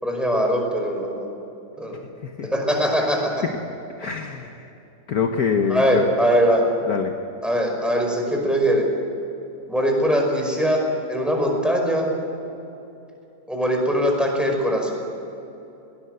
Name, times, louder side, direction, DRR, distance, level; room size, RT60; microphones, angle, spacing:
voice 1, 0.0-1.3 1.8-2.0 2.4-3.4 5.7-6.6 7.4-8.9 9.7-10.8 11.1-12.1 13.5-15.0, equal, ahead, 1 dB, 5.2 m, -21 dB
voice 2, 4.0-4.7 5.1-6.0 6.9-7.1, left 6 dB, 55° left, 5 dB, 1.5 m, -25 dB
21.5 x 18.5 x 8.0 m, 2.9 s
omnidirectional pair, 2.0 m